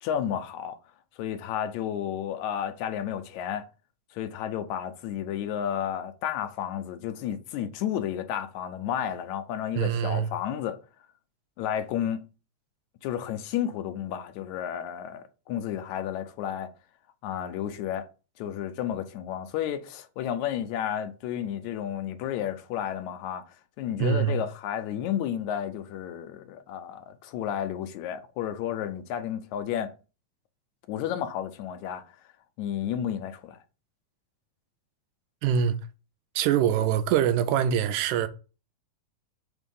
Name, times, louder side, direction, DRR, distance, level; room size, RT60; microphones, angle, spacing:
voice 1, 0.0-0.8 1.2-3.7 4.1-10.8 11.6-12.2 13.0-16.7 17.2-18.1 18.4-23.4 23.8-29.9 30.9-32.0 32.6-33.6, left 10 dB, 80° left, 2.0 m, -32 dB
voice 2, 9.8-10.3 24.0-24.4 35.4-35.8 36.4-38.3, right 9 dB, 85° right, 2.0 m, -24 dB
5.2 x 3.6 x 5.3 m
omnidirectional pair, 3.3 m